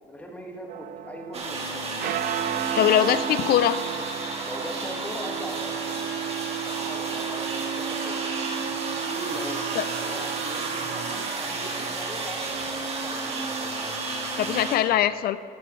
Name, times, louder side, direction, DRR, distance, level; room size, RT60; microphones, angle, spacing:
voice 1, 0.0-1.9 4.4-5.8 6.7-8.3 9.0-9.6 9.9-13.4, equal, 10° left, 0 dB, 1.8 m, -39 dB
sound 1, 0.7-9.2, right 11 dB, 60° right, 0.5 m, -35 dB
sound 2, 1.3-14.8, right 3 dB, 35° right, 1.9 m, -32 dB
voice 2, 2.8-3.8 9.8-9.9 14.4-15.4, left 11 dB, 65° left, 14 dB, 0.4 m, -22 dB
Wind instrument woodwind instrument, 5.2-11.3, right 13 dB, 75° right, 1.1 m, -35 dB
16.0 x 10.5 x 3.2 m, 2.5 s
cardioid pair, 110°, 17 cm